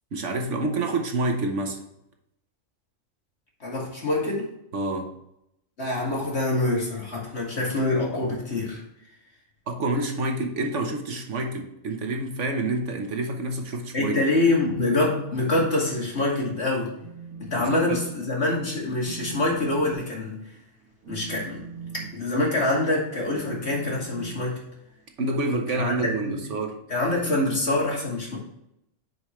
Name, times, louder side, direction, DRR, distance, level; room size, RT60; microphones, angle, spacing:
voice 1, 0.1-1.8 4.7-5.1 9.7-14.2 17.6-18.0 25.2-26.8, right 2 dB, 60° right, 4 dB, 1.3 m, -28 dB
voice 2, 3.6-4.5 5.8-8.8 13.9-16.9 17.4-20.4 21.1-21.6 22.1-24.6 25.7-25.9 26.2-26.4 26.9-28.4, left 2 dB, 50° left, -3 dB, 2.6 m, -25 dB
Telephone, 17.0-18.0 18.4-18.6 19.0-25.1, right 5 dB, 80° right, 1.7 m, -41 dB
9.5 x 5.1 x 3.1 m, 0.81 s
omnidirectional pair, 1.4 m